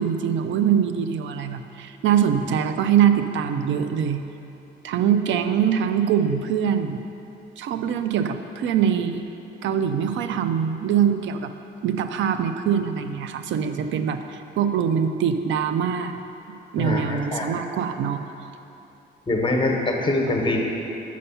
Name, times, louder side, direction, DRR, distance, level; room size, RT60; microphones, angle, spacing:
voice 1, 0.0-4.2 4.8-7.0 7.6-9.2 9.6-11.5 11.8-16.2 16.7-18.2, right 8 dB, 70° right, 8 dB, 0.5 m, -23 dB
voice 2, 16.8-17.5 19.3-20.6, left 2 dB, 25° left, 1 dB, 1.1 m, -23 dB
6.3 x 5.5 x 5.6 m, 2.8 s
cardioid pair, 90°, 20 cm